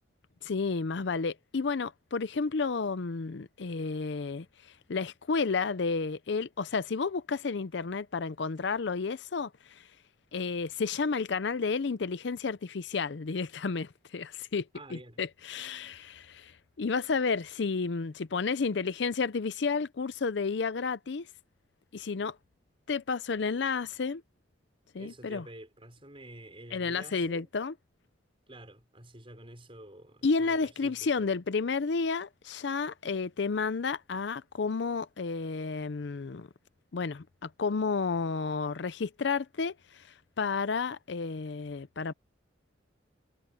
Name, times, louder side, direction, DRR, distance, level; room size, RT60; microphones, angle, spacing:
voice 1, 0.4-4.5 4.9-9.8 10.3-14.7 14.9-16.5 16.8-21.3 21.9-22.4 22.9-24.2 24.9-25.4 26.7-27.7 30.2-36.5 36.9-40.0 40.4-42.1, left 4 dB, 60° left, 0.5 m, -31 dB
voice 2, 14.7-15.2 25.0-27.5 28.5-31.3, right 1 dB, 30° right, 5.8 m, -49 dB
head